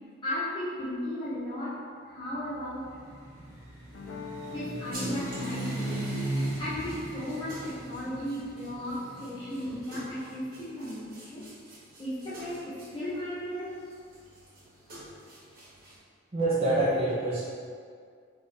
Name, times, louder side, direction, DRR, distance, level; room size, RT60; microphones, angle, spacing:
voice 1, 0.2-1.8 2.0-2.9 4.5-6.1 6.6-11.5 12.0-13.7, left 1 dB, 25° left, -12 dB, 0.7 m, -35 dB
sound 1, 2.6-10.6, right 1 dB, 75° right, 1.3 m, -37 dB
sound 2, 3.9-9.0, left 5 dB, 70° left, 0.4 m, -47 dB
sound 3, 4.9-16.0, right 1 dB, 45° right, 1.3 m, -49 dB
voice 2, 16.3-17.4, right 2 dB, 30° right, -9 dB, 0.7 m, -26 dB
4.1 x 3.4 x 3.3 m, 2.1 s
head